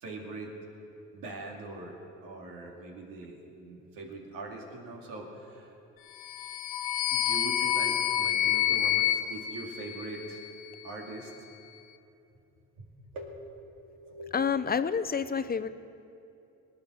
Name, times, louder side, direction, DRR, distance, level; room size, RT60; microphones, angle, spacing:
voice 1, 0.0-0.5 1.1-5.7 7.1-10.4 10.8-11.3 12.8-12.9 13.1-14.4, right 2 dB, 80° right, 0 dB, 2.5 m, -42 dB
sound 1, 6.2-10.5, left 11 dB, 80° left, 1.0 m, -28 dB
voice 2, 14.3-15.7, left 6 dB, 25° left, 11 dB, 0.7 m, -28 dB
19.0 x 9.6 x 6.3 m, 2.7 s
supercardioid pair, 70°, 34 cm